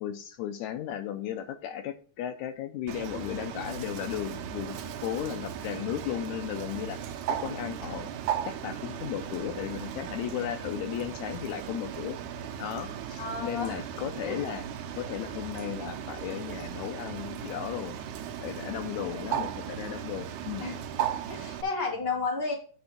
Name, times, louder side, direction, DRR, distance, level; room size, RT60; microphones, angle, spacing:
voice 1, 0.0-7.0 7.3-8.1 8.5-12.2 12.6-14.7 15.0-18.0 18.4-20.7, left 11 dB, 80° left, 8 dB, 1.9 m, -35 dB
Bird, 2.9-21.6, right 9 dB, 85° right, 2.2 m, -37 dB
voice 2, 13.2-13.8 14.2-14.5 18.9-19.2 20.6-20.8 21.3-22.5, left 4 dB, 20° left, -1 dB, 2.0 m, -32 dB
9.8 x 3.5 x 5.7 m, 0.42 s
omnidirectional pair, 3.4 m